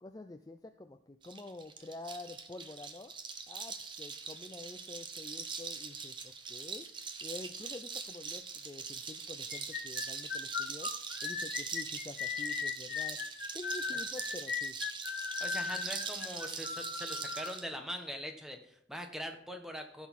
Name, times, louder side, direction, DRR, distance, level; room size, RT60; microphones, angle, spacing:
voice 1, 0.0-3.1 3.5-6.9 7.2-10.9 11.2-13.2 13.5-14.7, left 2 dB, 20° left, 7 dB, 0.3 m, -48 dB
sound 1, 1.2-17.6, right 5 dB, 25° right, 0.8 m, -42 dB
sound 2, 9.5-17.5, left 5 dB, 55° left, 0.9 m, -37 dB
voice 2, 15.4-20.1, equal, ahead, 4 dB, 1.0 m, -42 dB
14.5 x 6.1 x 4.2 m, 0.68 s
head